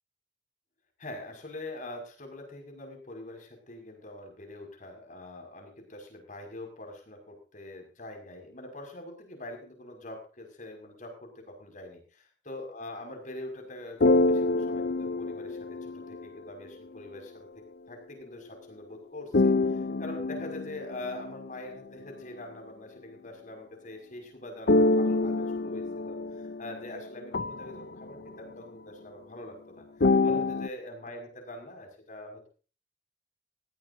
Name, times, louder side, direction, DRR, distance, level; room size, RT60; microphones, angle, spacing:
voice 1, 1.0-29.8 30.2-32.5, left 1 dB, 45° left, 4 dB, 6.0 m, -44 dB
sound 1, 14.0-16.4 19.3-21.6 24.7-28.3 30.0-30.7, left 2 dB, 60° left, 0.7 m, -26 dB
19.0 x 16.0 x 2.7 m, 0.36 s
head